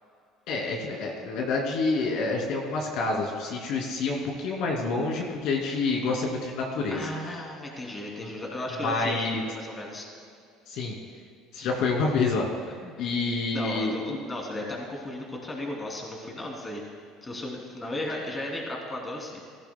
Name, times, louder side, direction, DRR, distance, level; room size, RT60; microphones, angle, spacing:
voice 1, 0.5-7.1 8.2-8.3 8.8-9.4 10.7-10.9 11.5-12.5 13.0-14.2, left 3 dB, 70° left, -1 dB, 2.6 m, -28 dB
voice 2, 6.9-10.1 12.7-12.9 13.5-16.8 17.2-19.4, left 1 dB, 20° left, -1 dB, 2.9 m, -35 dB
16.5 x 14.0 x 2.2 m, 2.3 s
supercardioid pair, 95°, 0 cm